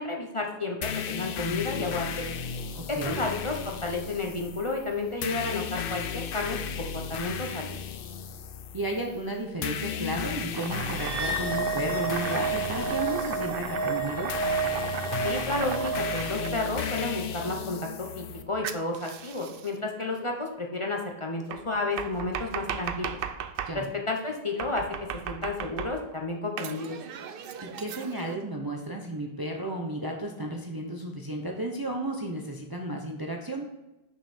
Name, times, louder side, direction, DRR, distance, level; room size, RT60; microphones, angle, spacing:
voice 1, 0.0-2.3 2.9-7.8 15.2-23.2 23.7-24.8 25.3-27.0, left 2 dB, 35° left, 1 dB, 0.8 m, -32 dB
sound 1, 0.8-18.4, left 7 dB, 65° left, 0.7 m, -35 dB
voice 2, 2.7-3.2 8.7-14.4 23.7-23.9 27.6-33.7, right 1 dB, 25° right, 1 dB, 0.6 m, -33 dB
Domestic sounds home sounds, 10.5-16.9 18.6-19.8 21.5-23.8 24.6-26.2 26.6-28.4, right 8 dB, 65° right, 0.7 m, -36 dB
sound 2, 10.9-17.5, right 3 dB, 85° right, 2.1 m, -31 dB
6.2 x 5.3 x 4.2 m, 0.98 s
omnidirectional pair, 1.1 m